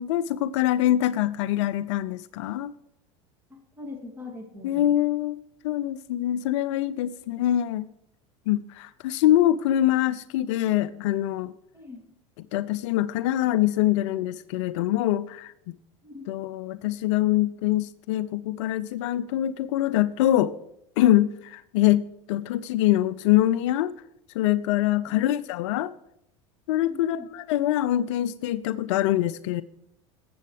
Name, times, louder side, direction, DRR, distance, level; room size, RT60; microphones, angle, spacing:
voice 1, 0.0-2.7 4.6-5.4 5.6-7.9 8.5-11.5 12.5-15.7 16.3-20.5 21.0-22.0 22.3-23.9 24.3-25.9 26.7-29.6, left 13 dB, 65° left, 17 dB, 0.4 m, -24 dB
voice 2, 3.5-4.9 11.7-12.0 16.0-16.3 26.9-27.3, left 3 dB, 15° right, 2 dB, 2.7 m, -42 dB
17.5 x 7.7 x 3.3 m, 0.78 s
hypercardioid pair, 80°, 16 cm